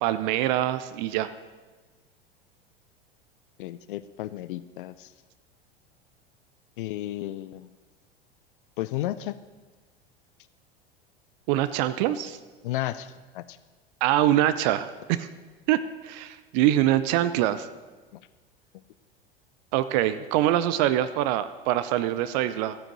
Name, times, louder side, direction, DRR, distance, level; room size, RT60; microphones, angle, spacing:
voice 1, 0.0-1.3 11.5-12.4 14.0-15.3 15.7-17.7 19.7-22.8, right 13 dB, 45° right, 13 dB, 0.6 m, -24 dB
voice 2, 3.6-5.1 6.8-7.7 8.8-9.4 12.6-13.6, left 14 dB, 60° left, 15 dB, 0.5 m, -33 dB
14.0 x 8.9 x 6.1 m, 1.3 s
figure-of-eight pair, 80°, 30 cm